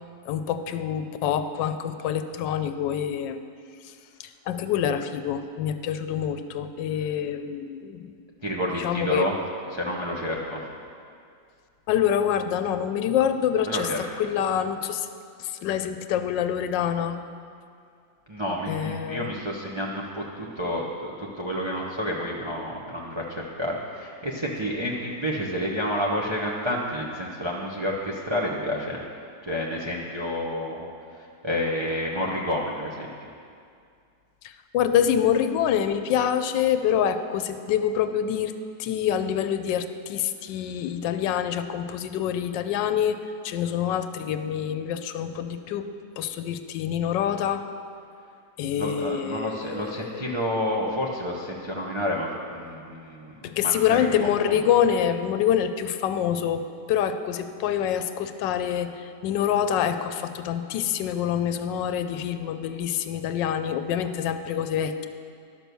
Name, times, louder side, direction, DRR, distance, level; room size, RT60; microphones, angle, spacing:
voice 1, 0.3-3.4 3.8-3.9 4.2-8.1 8.7-9.3 11.9-15.1 15.4-17.2 18.7-19.3 34.4-38.5 38.8-47.7 48.6-50.4 53.4-65.1, left 9 dB, 90° left, 9 dB, 1.3 m, -26 dB
voice 2, 8.4-9.3 9.7-10.6 13.7-14.0 18.3-29.0 29.4-30.8 31.1-33.1 48.7-54.6, equal, 25° right, -3 dB, 0.6 m, -29 dB
11.5 x 6.2 x 6.8 m, 2.3 s
omnidirectional pair, 1.9 m